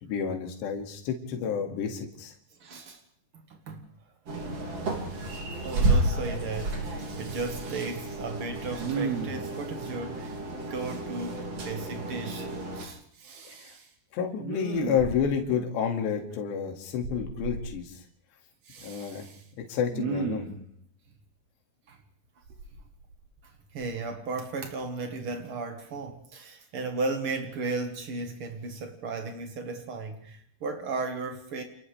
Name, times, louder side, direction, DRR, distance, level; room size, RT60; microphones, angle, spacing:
voice 1, 0.0-2.3 13.6-13.7 14.1-18.0 18.8-19.2 19.6-20.5, left 7 dB, 75° left, 4.4 m, -30 dB
voice 2, 2.5-3.0 3.3-3.9 4.3-4.4 5.2-5.3 5.6-13.4 21.9-22.0 23.4-31.6, right 3 dB, 80° right, 1.2 m, -35 dB
sound 1, 4.3-12.9, right 2 dB, 40° right, 3.5 m, -31 dB
Respiratory sounds, 5.5-5.7 6.0-6.7 7.1-8.1 8.8-9.6 13.2-13.8 14.4-15.5 17.0-17.6 18.7-19.4 19.9-20.7 22.5-23.4 23.8-24.0, right 5 dB, 60° right, 4.0 m, -36 dB
30.0 x 28.0 x 3.4 m
omnidirectional pair, 5.1 m